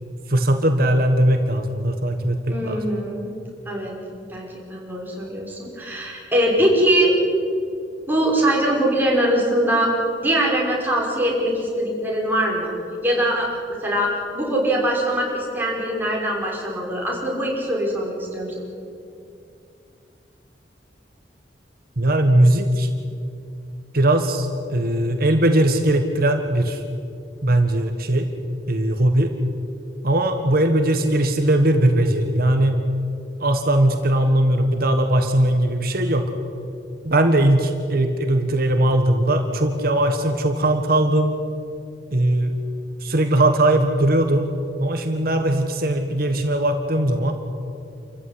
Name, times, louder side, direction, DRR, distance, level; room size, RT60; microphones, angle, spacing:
voice 1, 0.3-2.8 22.0-22.9 23.9-26.8 27.4-28.3 28.7-29.3 30.0-32.8 33.4-36.3 37.0-41.3 42.1-42.5 43.0-44.5 44.8-47.3, right 1 dB, 55° right, 5 dB, 1.7 m, -19 dB
voice 2, 2.5-3.3 3.7-7.1 8.1-9.9 10.2-12.7 13.0-13.5 13.8-18.7, right 1 dB, 10° right, -3 dB, 6.0 m, -22 dB
28.5 x 15.0 x 9.8 m, 2.6 s
head